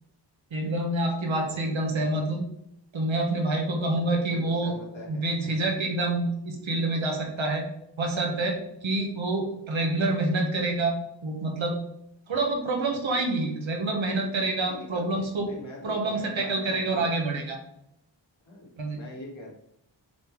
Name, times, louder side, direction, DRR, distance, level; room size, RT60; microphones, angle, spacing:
voice 1, 0.5-2.4 2.9-4.7 5.1-7.6 8.0-11.0 11.2-11.8 12.3-15.5 15.8-17.6 18.8-19.0, right 2 dB, 90° right, 2 dB, 1.6 m, -27 dB
voice 2, 1.7-2.4 3.9-5.7 14.6-17.2 18.4-19.5, left 1 dB, 80° left, -3 dB, 2.4 m, -44 dB
6.9 x 4.0 x 4.7 m, 0.79 s
wide cardioid pair, 60°, 45 cm